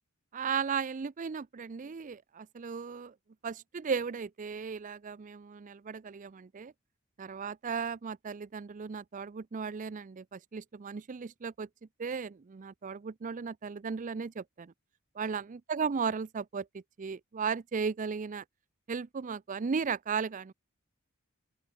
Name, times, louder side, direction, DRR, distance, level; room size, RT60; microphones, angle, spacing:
voice 1, 0.3-3.1 3.4-6.7 7.2-11.7 12.0-14.7 15.1-18.4 18.9-20.5, right 6 dB, 35° right, 0.4 m, -36 dB
open air
head